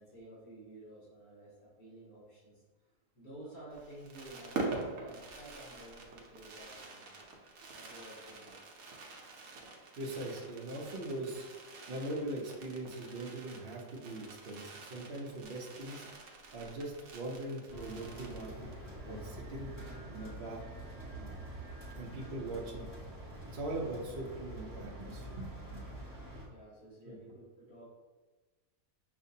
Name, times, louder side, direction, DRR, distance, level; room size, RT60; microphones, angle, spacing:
voice 1, 0.0-7.2 7.7-8.7 26.5-27.8, right 1 dB, 55° left, -7 dB, 1.7 m, -52 dB
Fireworks, 3.7-18.9 19.2-19.3 19.5-19.8, right 3 dB, 65° right, 1.1 m, -45 dB
voice 2, 9.9-11.5 11.9-20.6 21.1-21.4 21.9-22.9 23.5-25.9 27.0-27.2, right 2 dB, 45° right, -2 dB, 0.8 m, -41 dB
sound 1, 17.7-26.5, right 1 dB, 15° right, 1.0 m, -46 dB
6.6 x 2.6 x 2.7 m, 1.3 s
omnidirectional pair, 1.7 m